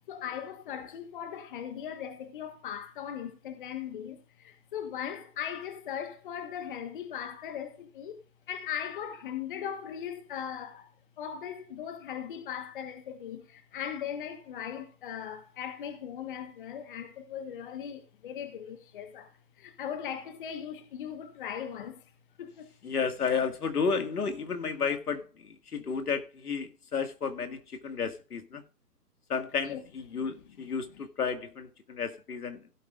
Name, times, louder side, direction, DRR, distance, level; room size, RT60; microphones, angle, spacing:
voice 1, 0.1-10.9 11.2-22.1 22.4-22.7 29.7-29.8, left 9 dB, 35° left, 1.5 m, -39 dB
voice 2, 22.8-28.6 29.3-32.6, left 5 dB, 70° left, 2.2 m, -32 dB
16.5 x 8.9 x 2.5 m
hypercardioid pair, 155°, 47 cm